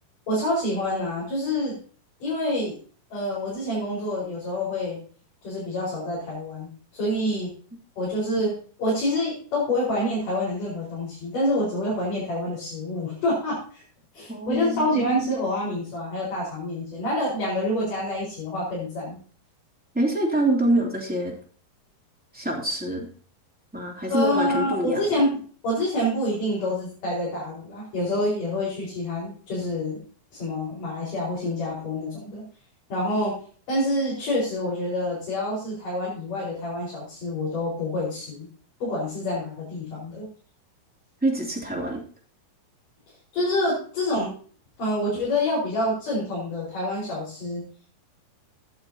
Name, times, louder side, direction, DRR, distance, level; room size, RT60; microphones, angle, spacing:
voice 1, 0.3-1.8 2.2-2.8 3.1-5.0 5.4-7.5 8.0-13.8 14.1-19.2 24.1-25.3 25.6-30.0 30.3-32.4 32.9-33.4 33.7-38.5 38.8-40.3 43.3-44.3 44.8-47.6, left 1 dB, 65° left, -7 dB, 6.4 m, -27 dB
voice 2, 14.3-14.8 19.9-21.3 22.3-23.1 23.7-25.0 41.2-42.0, right 1 dB, 5° right, -2 dB, 2.3 m, -25 dB
14.5 x 10.5 x 2.9 m, 0.42 s
omnidirectional pair, 4.0 m